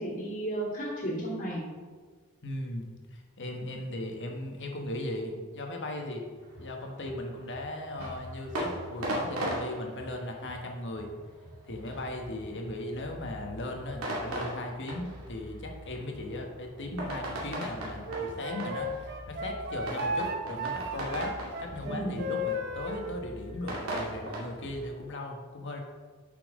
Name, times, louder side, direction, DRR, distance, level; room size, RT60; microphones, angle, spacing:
voice 1, 0.0-1.6 21.8-22.2, right 1 dB, 40° left, -5 dB, 2.3 m, -33 dB
voice 2, 2.4-6.2 6.6-11.1 11.6-25.8, left 1 dB, 55° left, 2 dB, 1.3 m, -37 dB
sound 1, 6.4-24.9, right 1 dB, 75° right, 2.3 m, -39 dB
Wind instrument woodwind instrument, 18.1-23.1, equal, 50° right, 0.8 m, -34 dB
10.0 x 5.9 x 3.7 m, 1.5 s
head